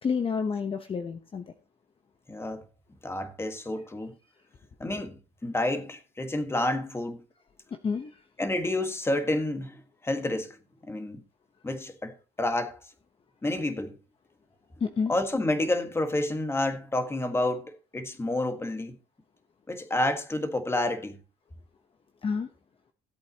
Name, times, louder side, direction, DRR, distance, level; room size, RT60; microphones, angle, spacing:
voice 1, 0.0-1.4 7.8-8.1 14.8-15.1 22.2-22.5, left 5 dB, 30° left, 0.9 m, -29 dB
voice 2, 2.3-2.6 3.0-4.2 4.8-7.2 8.4-10.6 10.8-11.2 11.6-12.8 13.4-14.0 15.1-19.0 19.7-21.2, left 1 dB, 15° left, 1.6 m, -29 dB
16.5 x 8.3 x 2.9 m
cardioid pair, 110°, 17 cm